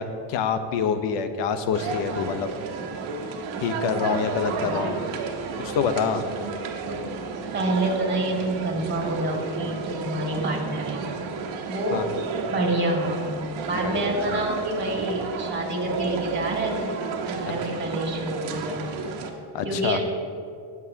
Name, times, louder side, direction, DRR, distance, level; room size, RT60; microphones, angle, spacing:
voice 1, 0.0-2.5 3.6-5.0 5.6-6.2 11.9-12.0 13.8-14.0 19.5-20.0, left 6 dB, 60° left, 9 dB, 1.0 m, -26 dB
sound 1, 1.7-19.3, right 4 dB, 70° right, 1.4 m, -32 dB
voice 2, 7.5-11.1 11.6-12.1 12.4-13.2 13.7-18.8 19.6-20.0, right 1 dB, 20° right, -1 dB, 2.5 m, -27 dB
19.0 x 7.4 x 2.9 m, 2.3 s
cardioid pair, 130°, 49 cm